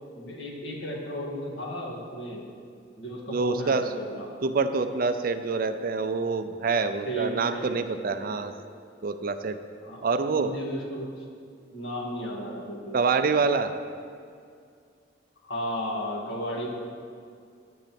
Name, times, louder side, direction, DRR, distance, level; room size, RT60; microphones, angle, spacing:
voice 1, 0.2-2.4 3.0-4.3 7.1-7.8 8.2-8.4 9.8-11.2 11.7-13.0 15.4-16.7, equal, 70° left, -3 dB, 1.8 m, -34 dB
voice 2, 3.3-3.9 4.4-8.5 9.0-9.6 10.0-10.5 12.9-13.7, right 4 dB, 50° right, 9 dB, 0.4 m, -26 dB
10.5 x 3.9 x 7.5 m, 2.3 s
head